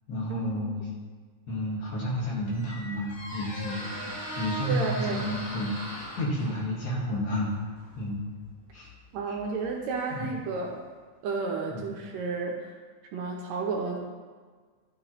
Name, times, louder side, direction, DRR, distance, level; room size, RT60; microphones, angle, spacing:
voice 1, 0.1-0.9 1.5-3.9 4.3-8.2 8.7-8.9 9.3-9.4 10.1-10.3 11.7-11.9, equal, 40° left, -4 dB, 1.6 m, -31 dB
Squeak, 1.9-10.6, equal, 65° left, 3.7 m, -41 dB
voice 2, 4.7-5.3 9.1-10.8 11.2-12.6 13.1-14.0, right 4 dB, 75° right, 0 dB, 1.8 m, -31 dB
11.5 x 5.5 x 2.9 m, 1.5 s
omnidirectional pair, 3.5 m